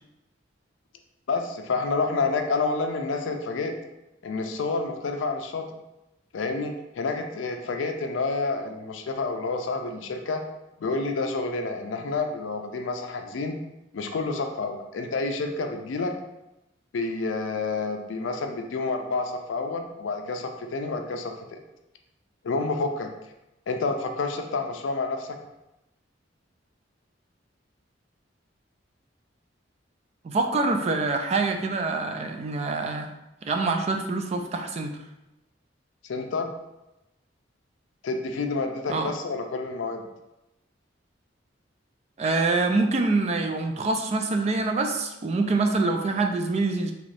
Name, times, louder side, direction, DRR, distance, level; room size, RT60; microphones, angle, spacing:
voice 1, 1.3-3.8 4.2-5.7 6.3-10.4 10.8-13.6 13.9-16.1 16.9-21.6 22.4-23.1 23.7-25.4 36.1-36.5 38.0-40.1, left 3 dB, 80° left, 5 dB, 0.4 m, -29 dB
voice 2, 30.2-33.1 33.4-35.0 38.9-39.1 42.2-46.9, right 3 dB, 35° right, 5 dB, 0.3 m, -25 dB
2.9 x 2.5 x 3.2 m, 0.93 s
head